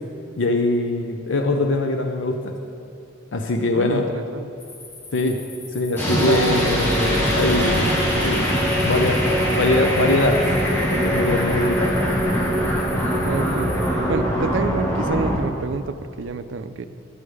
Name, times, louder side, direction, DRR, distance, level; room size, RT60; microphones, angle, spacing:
voice 1, 0.4-2.5 3.3-4.0 5.1-5.4 5.7-10.4 10.9-12.0, left 2 dB, 70° left, 3 dB, 0.6 m, -22 dB
voice 2, 3.7-4.5 6.1-6.4 13.2-13.7 14.1-16.8, right 4 dB, 75° right, 11 dB, 0.4 m, -28 dB
sound 1, 4.6-13.9, left 3 dB, 40° left, 2.4 m, -42 dB
sound 2, 6.0-15.4, equal, 10° left, 1.7 m, -22 dB
9.6 x 8.5 x 4.8 m, 2.7 s
head